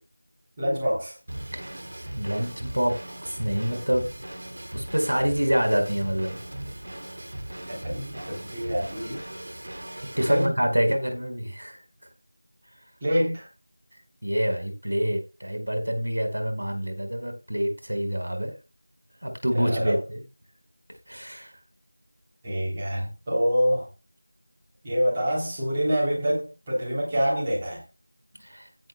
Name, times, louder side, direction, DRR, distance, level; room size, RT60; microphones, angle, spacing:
voice 1, 0.6-1.2 7.7-9.2 10.3-10.5 13.0-13.5 19.5-20.0 22.4-23.9 24.8-27.8, equal, 15° right, -6 dB, 3.3 m, -26 dB
Drum kit / Drum, 1.3-10.5, right 1 dB, 50° right, 3.1 m, -38 dB
voice 2, 2.1-3.0 3.3-4.0 4.7-6.4 10.2-11.8 14.2-18.5 19.2-20.2 21.1-21.5 28.4-28.7, equal, 80° right, 5 dB, 5.0 m, -26 dB
16.5 x 9.4 x 2.3 m, 0.28 s
figure-of-eight pair, 175°, 0 cm